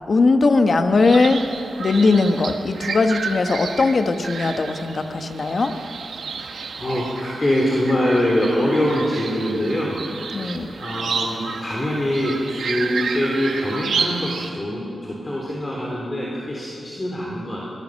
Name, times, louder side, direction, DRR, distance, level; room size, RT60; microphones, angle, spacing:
voice 1, 0.1-1.4 1.8-5.7 10.3-10.7, left 3 dB, 45° left, 7 dB, 1.2 m, -19 dB
sound 1, 1.0-14.5, right 5 dB, 75° right, 1.5 m, -31 dB
voice 2, 6.7-10.0 10.8-17.7, left 1 dB, 25° left, -4 dB, 3.3 m, -23 dB
24.0 x 18.5 x 6.5 m, 2.7 s
wide cardioid pair, 135°, 0 cm